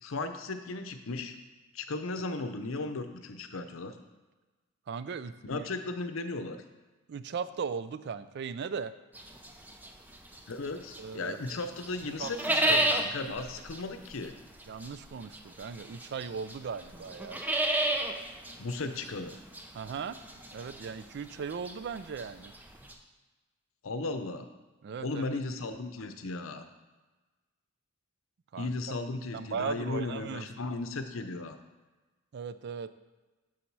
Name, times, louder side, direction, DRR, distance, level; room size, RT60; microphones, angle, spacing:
voice 1, 0.0-1.3 1.7-4.0 5.4-6.6 10.5-14.4 18.6-19.4 23.8-24.5 25.0-26.6 28.6-31.6, left 3 dB, 70° left, 8 dB, 0.7 m, -36 dB
voice 2, 4.9-5.6 7.1-8.9 11.0-11.6 12.2-13.3 14.7-17.4 19.7-20.2 20.5-22.5 24.8-25.3 28.5-28.7 29.3-30.5 32.3-32.9, right 6 dB, 55° right, 14 dB, 0.4 m, -38 dB
sound 1, 9.1-11.2 11.5-22.9, right 1 dB, 10° right, 0.6 m, -32 dB
7.1 x 6.3 x 4.6 m, 1.2 s
head